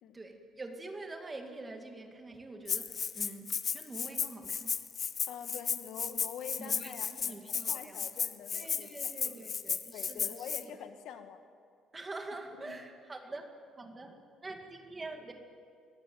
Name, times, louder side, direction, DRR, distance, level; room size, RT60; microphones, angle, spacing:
voice 1, 0.1-4.8 6.6-8.1 8.5-10.5 11.9-13.5 13.8-15.3, right 2 dB, 15° right, 5 dB, 2.0 m, -45 dB
Rattle (instrument), 2.7-10.6, left 7 dB, 30° left, 0.8 m, -34 dB
voice 2, 5.3-9.1 9.9-11.4 12.5-12.8 13.9-14.0, left 8 dB, 60° left, 8 dB, 1.7 m, -46 dB
24.0 x 19.5 x 9.3 m, 2.2 s
cardioid pair, 175°, 0 cm